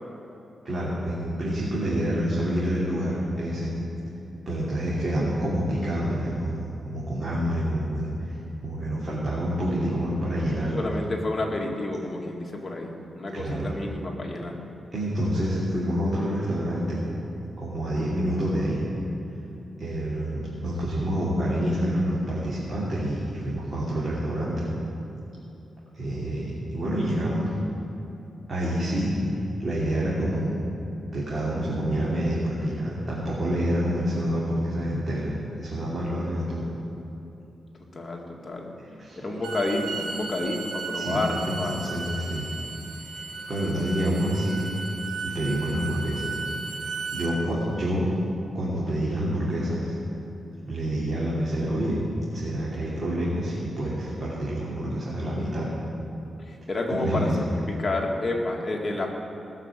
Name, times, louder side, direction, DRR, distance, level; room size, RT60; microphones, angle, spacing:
voice 1, 0.6-3.7 4.5-8.1 8.6-10.8 13.3-13.7 14.9-17.0 17.6-18.8 19.8-24.7 25.9-27.5 28.5-29.1 29.6-30.5 31.1-36.6 39.0-39.2 40.9-41.2 41.5-42.5 43.5-44.7 45.2-46.4 47.1-48.1 48.5-49.9 50.6-52.0 52.3-55.7 56.9-57.3, equal, 40° right, -8 dB, 3.1 m, -27 dB
voice 2, 10.7-14.5 37.9-38.7 39.1-41.9 56.4-57.3 57.8-59.1, left 2 dB, 30° left, -1 dB, 2.0 m, -30 dB
Bowed string instrument, 39.3-47.3, right 4 dB, 80° right, 1.5 m, -35 dB
19.5 x 6.5 x 7.5 m, 2.8 s
wide cardioid pair, 110°, 0 cm